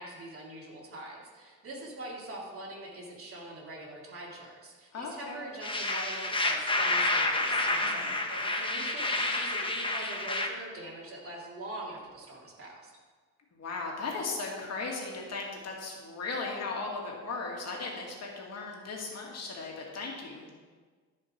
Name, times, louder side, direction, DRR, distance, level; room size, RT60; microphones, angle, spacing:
voice 1, 0.0-12.9, right 1 dB, 45° right, -3 dB, 3.1 m, -43 dB
voice 2, 4.9-5.4 7.8-8.1 13.5-20.5, left 3 dB, 55° left, -1 dB, 2.4 m, -37 dB
sound 1, 5.6-10.5, left 2 dB, 15° left, 1.2 m, -29 dB
14.0 x 5.7 x 4.6 m, 1.5 s
cardioid pair, 90°, 30 cm